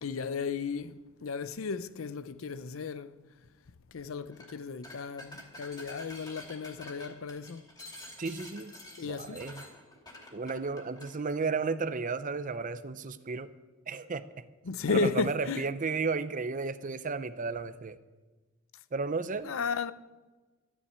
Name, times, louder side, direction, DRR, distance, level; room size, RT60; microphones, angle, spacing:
voice 1, 0.0-3.1 3.9-7.6 9.0-9.4 14.6-15.6 19.4-19.9, left 5 dB, 85° left, 0.6 m, -34 dB
sound 1, 4.3-4.5 4.8-11.1, left 1 dB, 20° left, 2.8 m, -48 dB
voice 2, 8.2-8.7 9.0-9.6 10.3-13.5 13.9-14.2 14.9-18.0 18.9-19.5, right 4 dB, 40° right, 0.6 m, -33 dB
12.5 x 9.8 x 8.6 m
head